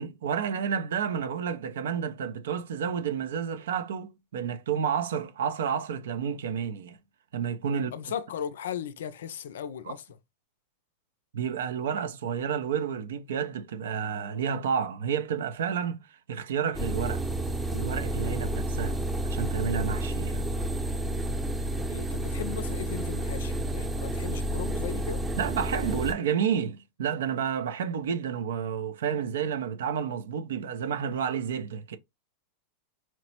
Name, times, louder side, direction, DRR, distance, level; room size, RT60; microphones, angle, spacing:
voice 1, 0.0-7.0 7.3-7.9 9.9-10.0 11.3-17.2 17.7-19.0 19.2-20.4 25.4-32.0, right 7 dB, 80° right, 0.5 m, -30 dB
voice 2, 7.7-10.0 21.9-25.2, left 9 dB, 80° left, 0.4 m, -37 dB
sound 1, 16.7-26.1, right 1 dB, 10° right, 0.7 m, -30 dB
4.3 x 2.0 x 2.9 m
hypercardioid pair, 115°, 0 cm